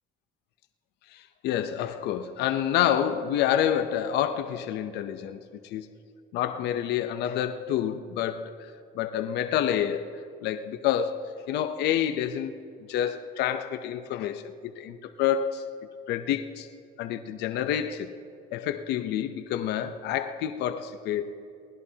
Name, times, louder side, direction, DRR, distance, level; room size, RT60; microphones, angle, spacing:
voice 1, 1.1-5.9 6.3-8.5 8.9-12.5 12.9-15.7 16.1-16.7 17.0-18.1 18.5-21.3, left 10 dB, 80° left, 10 dB, 0.7 m, -28 dB
23.0 x 19.0 x 2.8 m, 2.5 s
cardioid pair, 110°, 17 cm